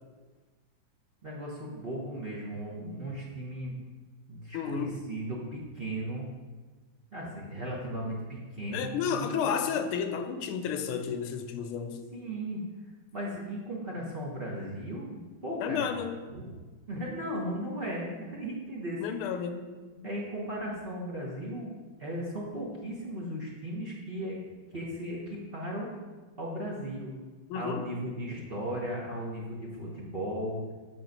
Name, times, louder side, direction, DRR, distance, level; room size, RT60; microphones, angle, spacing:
voice 1, 1.2-3.8 4.3-6.2 7.1-9.4 12.1-12.6 13.1-15.9 16.3-16.5 16.9-19.4 20.0-21.7 22.0-24.4 24.7-25.9 26.4-27.1 27.5-30.6, right 1 dB, 35° right, -5 dB, 1.0 m, -36 dB
voice 2, 4.5-4.9 8.7-12.0 15.6-16.2 19.0-19.6 19.9-20.1 27.5-27.8, left 7 dB, 90° left, 8 dB, 1.5 m, -32 dB
7.8 x 4.7 x 5.3 m, 1.3 s
omnidirectional pair, 2.3 m